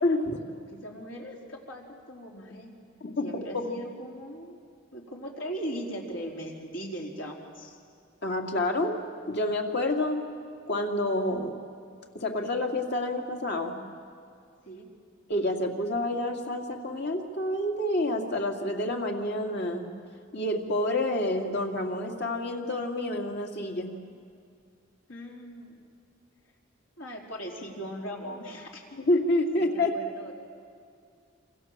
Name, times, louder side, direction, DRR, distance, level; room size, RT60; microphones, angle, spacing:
voice 1, 0.0-0.4 3.0-3.7 8.2-9.0 9.3-10.2 10.7-11.5 12.1-13.8 15.3-19.9 20.3-23.9 28.9-30.0, left 1 dB, 60° left, 2 dB, 2.7 m, -28 dB
voice 2, 0.5-2.7 3.2-4.6 4.9-7.8 14.7-14.9 25.1-25.8 27.0-28.8 29.6-30.3, equal, 75° left, 0 dB, 4.3 m, -39 dB
28.0 x 26.0 x 7.6 m, 2.3 s
head